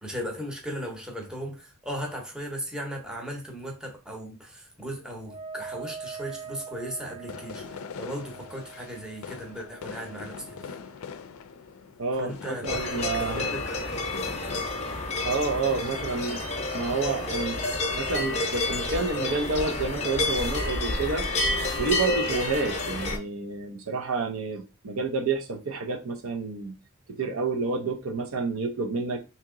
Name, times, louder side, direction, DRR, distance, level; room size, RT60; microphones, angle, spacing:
voice 1, 0.0-10.8 12.2-14.2, equal, 5° right, 0.8 m, -37 dB
Wind instrument woodwind instrument, 5.2-10.9, right 6 dB, 25° right, 0.5 m, -43 dB
sound 1, 7.0-14.6, left 6 dB, 75° left, 0.4 m, -42 dB
voice 2, 12.0-13.5 15.2-16.4 16.7-17.6 17.9-21.3 21.8-26.7 27.1-29.2, right 4 dB, 70° right, 0.6 m, -29 dB
sound 2, 12.7-23.2, left 2 dB, 30° left, 0.7 m, -29 dB
2.9 x 2.8 x 3.6 m
head